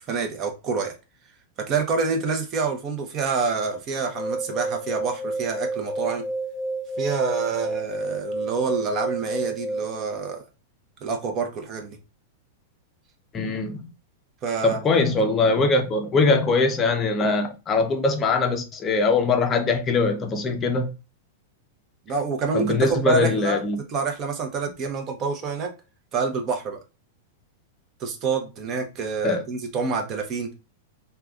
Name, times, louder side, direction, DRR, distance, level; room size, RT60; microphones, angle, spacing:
voice 1, 0.1-0.9 1.7-6.2 7.0-10.4 11.0-12.0 14.4-14.8 22.1-23.6 23.9-25.7 26.1-26.8 28.0-30.5, right 4 dB, 35° right, 0.7 m, -27 dB
sound 1, 4.0-10.0, right 2 dB, 10° left, 0.9 m, -30 dB
voice 2, 13.3-13.9 14.6-20.9 22.5-23.8 29.2-29.4, left 3 dB, 25° left, 0.5 m, -22 dB
3.4 x 2.2 x 2.3 m
hypercardioid pair, 120°, 0 cm